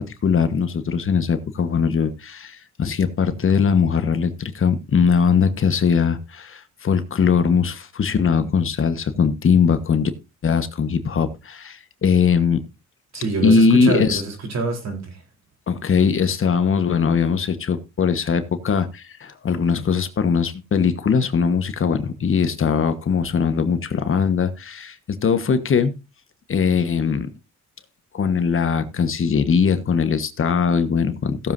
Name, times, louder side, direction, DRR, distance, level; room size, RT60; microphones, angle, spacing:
voice 1, 0.0-10.1 10.4-12.6 13.4-14.2 15.7-25.9 26.5-27.3 28.1-31.5, left 6 dB, 45° left, 1.3 m, -20 dB
voice 2, 13.1-15.2, right 3 dB, 60° right, 4.0 m, -26 dB
17.5 x 7.4 x 2.7 m
cardioid pair, 90°, 30 cm